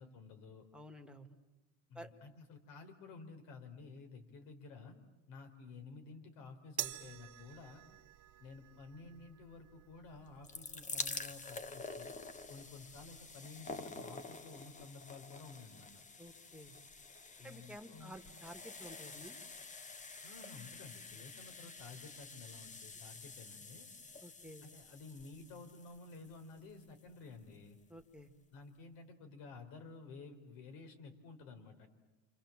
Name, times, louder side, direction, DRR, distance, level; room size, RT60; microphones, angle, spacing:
voice 1, 0.0-0.7 1.9-5.0 5.3-7.8 8.4-12.1 12.5-16.0 17.4-18.2 20.2-23.9 24.6-27.8 28.5-31.9, left 4 dB, 75° left, 6 dB, 4.6 m, -53 dB
voice 2, 0.7-1.4 2.0-2.1 16.2-16.7 17.4-19.4 24.2-24.7 27.9-28.3, equal, 5° right, 5 dB, 1.9 m, -52 dB
sound 1, 6.8-13.3, right 15 dB, 55° right, 1.4 m, -49 dB
sound 2, 10.2-27.2 28.0-28.1 28.3-28.4, left 4 dB, 20° left, 1.1 m, -48 dB
29.0 x 27.0 x 7.5 m, 1.0 s
cardioid pair, 125°, 35 cm